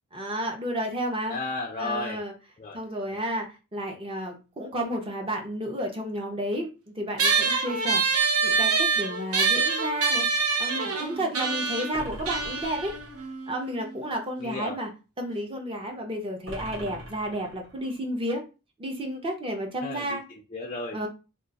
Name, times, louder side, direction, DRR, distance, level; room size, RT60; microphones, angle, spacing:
voice 1, 0.1-1.4 1.8-2.3 2.7-8.0 8.4-10.3 10.6-13.0 13.5-14.9 15.2-18.4 18.8-20.2 20.9-21.1, equal, 25° right, 2 dB, 0.5 m, -31 dB
voice 2, 1.3-2.2 2.6-2.8 14.4-14.8 19.8-21.0, left 3 dB, 30° left, 0 dB, 0.3 m, -34 dB
sound 1, 7.2-14.0, right 4 dB, 85° right, 0.7 m, -26 dB
sound 2, 11.9-13.4 16.5-18.0, equal, 60° right, 1.0 m, -42 dB
2.3 x 2.2 x 3.9 m, 0.32 s
head